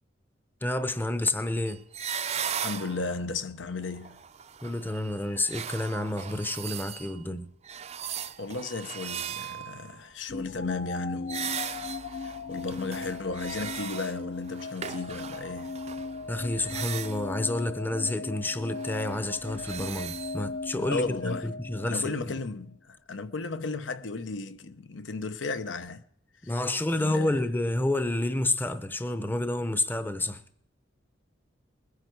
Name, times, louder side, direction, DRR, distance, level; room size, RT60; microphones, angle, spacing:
voice 1, 0.6-1.8 4.6-7.5 16.3-22.4 26.4-30.4, left 2 dB, 10° left, 0.6 m, -29 dB
sound 1, 1.7-3.2 3.8-7.2 7.6-10.0 11.3-17.4 18.7-20.4, right 8 dB, 35° right, 0.5 m, -38 dB
voice 2, 2.6-4.2 8.4-11.6 12.2-15.8 20.9-21.5 21.8-26.0 26.4-26.5 26.9-27.4, left 3 dB, 85° left, 0.8 m, -34 dB
sound 2, 10.3-22.4, left 4 dB, 50° left, 0.4 m, -38 dB
21.0 x 9.7 x 4.6 m
head